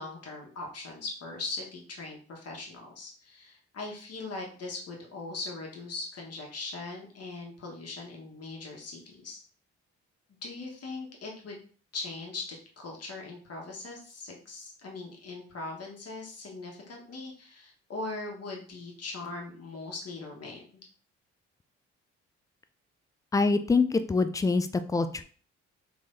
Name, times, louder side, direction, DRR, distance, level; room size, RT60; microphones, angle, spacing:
voice 1, 0.0-9.4 10.4-11.6 11.9-20.7, left 3 dB, 50° left, 0 dB, 1.3 m, -40 dB
voice 2, 23.3-25.2, left 3 dB, 10° left, 10 dB, 0.3 m, -25 dB
3.6 x 3.0 x 2.6 m, 0.43 s
hypercardioid pair, 45°, 33 cm